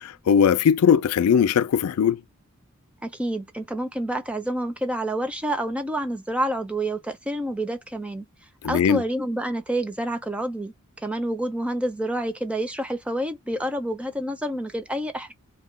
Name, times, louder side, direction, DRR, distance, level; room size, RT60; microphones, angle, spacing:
voice 1, 0.0-2.2 8.6-9.0, left 7 dB, 85° left, 0.3 m, -19 dB
voice 2, 3.0-8.3 8.7-15.3, right 1 dB, 5° right, 0.4 m, -28 dB
2.3 x 2.3 x 3.5 m
head